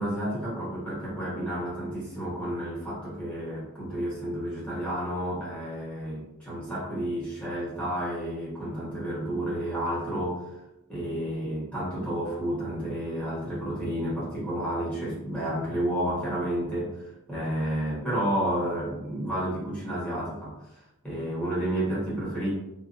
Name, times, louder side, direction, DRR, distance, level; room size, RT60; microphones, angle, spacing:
voice 1, 0.0-10.4 10.9-20.5 21.0-22.5, right 1 dB, 5° left, -8 dB, 1.0 m, -31 dB
2.6 x 2.2 x 2.4 m, 0.91 s
head